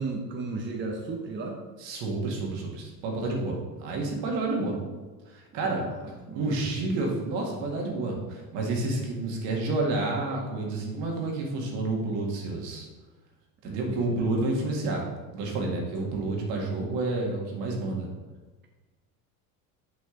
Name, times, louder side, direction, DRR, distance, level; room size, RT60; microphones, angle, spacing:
voice 1, 0.0-1.6 5.6-6.6 13.6-14.2 16.0-16.1, right 3 dB, 25° right, 1 dB, 0.9 m, -35 dB
voice 2, 1.8-4.8 5.3-5.9 6.3-12.9 13.6-15.1 15.3-18.1, right 2 dB, 65° right, 0 dB, 2.0 m, -29 dB
6.6 x 5.1 x 3.9 m, 1.3 s
supercardioid pair, 90°, 47 cm